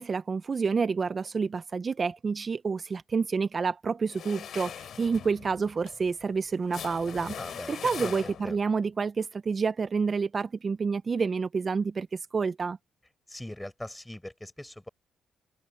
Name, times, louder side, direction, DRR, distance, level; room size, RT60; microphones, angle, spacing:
voice 1, 0.0-7.4 7.7-12.8, right 5 dB, 35° right, 0.5 m, -29 dB
sound 1, 4.1-8.7, left 9 dB, 65° left, 3.1 m, -41 dB
voice 2, 7.4-8.6 13.3-14.9, left 1 dB, 5° left, 7.1 m, -41 dB
cardioid pair, 90°, 0 cm